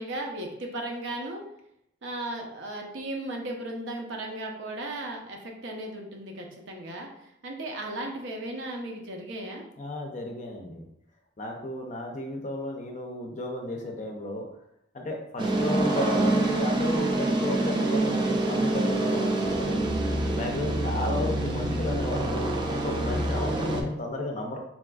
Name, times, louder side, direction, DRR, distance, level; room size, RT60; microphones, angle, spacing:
voice 1, 0.0-1.4 2.0-7.1 7.4-9.6 20.6-21.0, right 1 dB, 70° right, 1 dB, 0.6 m, -36 dB
voice 2, 9.8-10.8 11.4-14.5 14.9-19.8 20.4-24.6, left 1 dB, 40° left, 2 dB, 0.5 m, -33 dB
sound 1, 15.4-23.8, right 2 dB, 25° right, 0.3 m, -26 dB
4.0 x 2.4 x 2.3 m, 0.79 s
head